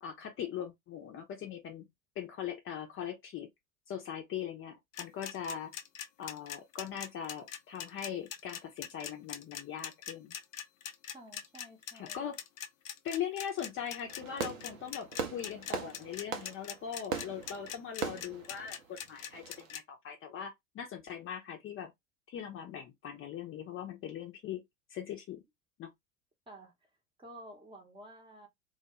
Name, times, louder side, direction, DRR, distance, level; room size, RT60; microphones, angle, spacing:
voice 1, 0.0-1.9 2.2-3.5 3.9-5.7 6.2-10.3 11.9-12.4 13.0-21.9 22.3-24.6 24.9-25.4 25.8-25.9, left 9 dB, 30° left, 0.7 m, -40 dB
sound 1, 4.9-19.8, left 9 dB, 75° left, 0.5 m, -42 dB
voice 2, 11.1-12.2 26.5-26.7 27.2-28.5, right 1 dB, 10° right, 0.9 m, -51 dB
Fireworks, 14.1-19.7, right 5 dB, 75° right, 0.7 m, -40 dB
2.3 x 2.2 x 2.9 m
figure-of-eight pair, 75°, 40 cm